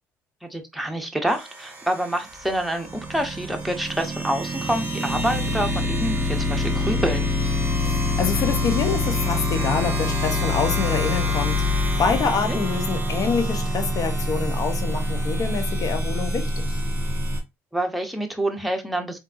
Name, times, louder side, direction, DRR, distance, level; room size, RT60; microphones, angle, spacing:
voice 1, 0.4-7.3 12.5-12.6 17.7-19.2, right 1 dB, ahead, 0.9 m, -27 dB
sound 1, 1.3-17.4, left 2 dB, 25° right, 1.5 m, -25 dB
voice 2, 7.8-16.8, left 5 dB, 55° left, 0.9 m, -26 dB
3.6 x 2.7 x 2.6 m
hypercardioid pair, 65°, 7 cm